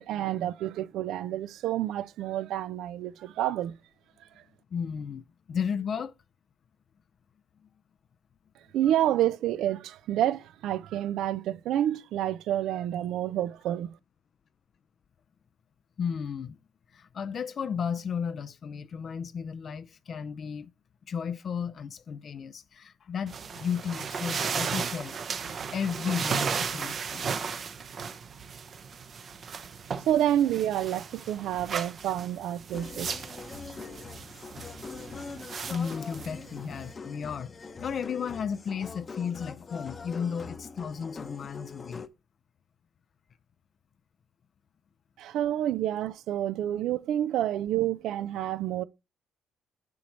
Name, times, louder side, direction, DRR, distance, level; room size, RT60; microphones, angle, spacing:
voice 1, 0.0-3.8 8.7-13.9 29.5-29.6 30.1-33.1 45.2-48.8, right 12 dB, 75° right, 0.4 m, -29 dB
voice 2, 4.7-6.1 16.0-16.6 16.9-20.7 21.1-25.2 25.7-27.3 35.7-42.0, left 7 dB, 50° left, 0.4 m, -34 dB
sound 1, 23.3-36.9, right 6 dB, 50° right, 0.8 m, -35 dB
sound 2, 32.7-42.1, left 4 dB, 35° left, 0.7 m, -43 dB
7.8 x 7.1 x 3.1 m
cardioid pair, 85°, 0 cm